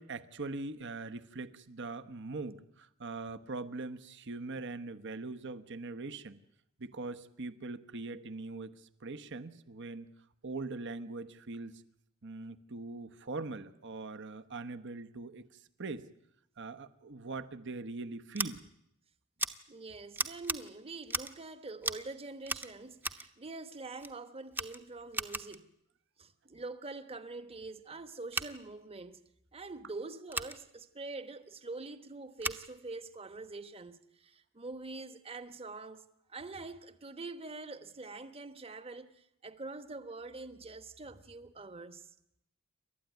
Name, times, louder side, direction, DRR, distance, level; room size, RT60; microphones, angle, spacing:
voice 1, 0.0-6.4 6.8-8.7 9.0-10.1 10.4-11.7 12.2-15.4 15.8-16.1 16.6-18.6, right 3 dB, 55° right, 1.2 m, -41 dB
Scissors, 18.3-18.5 19.4-19.5 20.1-20.6 21.1-21.4 21.8-22.1 22.4-23.3 24.0-24.1 24.5-25.6 28.3-28.5 30.3-30.5 32.4-32.6, right 2 dB, 10° right, 0.9 m, -36 dB
voice 2, 19.7-25.7 26.2-29.2 29.5-42.1, right 3 dB, 25° right, 1.3 m, -45 dB
28.5 x 13.0 x 9.5 m
head